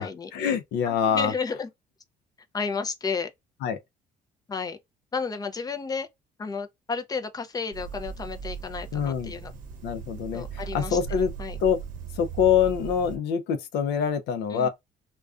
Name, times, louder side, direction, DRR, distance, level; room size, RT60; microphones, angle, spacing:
voice 1, 0.0-1.3 3.6-3.8 8.9-9.3 9.8-11.3 11.6-11.8 12.2-14.7, left 7 dB, 80° left, 0.5 m, -25 dB
voice 2, 0.8-1.7 2.5-3.3 4.5-4.8 5.1-6.1 6.4-9.5 10.3-11.0 11.4-11.6 14.5-14.7, left 5 dB, 20° left, 0.4 m, -32 dB
sound 1, 7.7-13.2, right 7 dB, 50° right, 0.7 m, -38 dB
2.4 x 2.2 x 2.3 m
cardioid pair, 110°, 17 cm